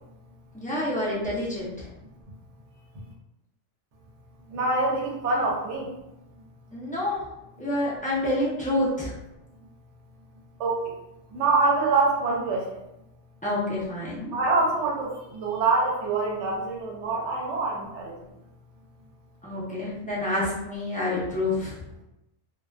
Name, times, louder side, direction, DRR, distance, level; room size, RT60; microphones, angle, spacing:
voice 1, 0.5-1.7 6.7-7.2 7.6-9.1 13.4-14.4 19.4-21.7, left 1 dB, 10° left, -8 dB, 0.4 m, -28 dB
voice 2, 4.5-5.9 10.6-10.8 11.3-12.8 14.3-18.1, right 3 dB, 75° right, -2 dB, 0.9 m, -25 dB
2.3 x 2.3 x 2.3 m, 0.90 s
omnidirectional pair, 1.3 m